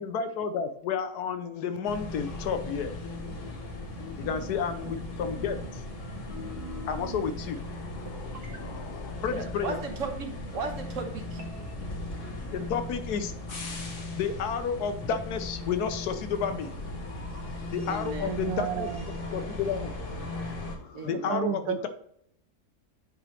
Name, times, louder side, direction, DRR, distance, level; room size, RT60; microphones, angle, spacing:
voice 1, 0.0-3.1 4.2-5.8 6.9-9.8 12.5-13.3 14.2-16.7 17.7-18.9 19.3-21.9, left 6 dB, 85° left, 9 dB, 1.3 m, -32 dB
sound 1, 1.8-20.8, left 2 dB, 55° left, 1.5 m, -37 dB
voice 2, 3.9-4.5 7.3-7.5 9.3-11.4 17.8-18.4 20.9-21.6, right 4 dB, 60° right, 5 dB, 1.3 m, -37 dB
sound 2, 8.0-10.2 11.4-11.8, right 2 dB, 40° right, 1.7 m, -50 dB
voice 3, 18.2-19.1 21.1-21.9, right 9 dB, 75° right, 12 dB, 1.0 m, -32 dB
8.6 x 5.0 x 3.1 m, 0.70 s
omnidirectional pair, 1.6 m